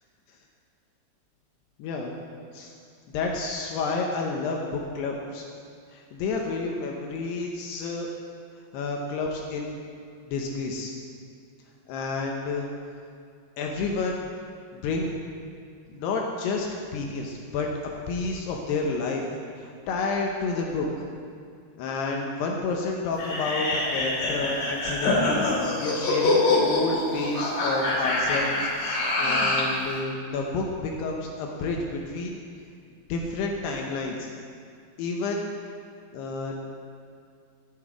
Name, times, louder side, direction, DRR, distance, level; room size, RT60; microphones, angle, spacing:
voice 1, 1.8-2.2 2.5-2.7 3.1-5.4 5.9-8.1 8.7-9.9 10.3-10.9 11.9-12.7 13.6-14.2 14.7-15.1 15.9-17.7 18.1-19.2 19.6-20.9 21.8-32.4 33.1-34.3 35.0-35.5 36.1-36.7, left 3 dB, 75° left, 0 dB, 2.8 m, -30 dB
sound 1, 23.2-29.7, left 2 dB, 50° left, 3.5 m, -25 dB
11.0 x 11.0 x 4.7 m, 2.3 s
omnidirectional pair, 5.2 m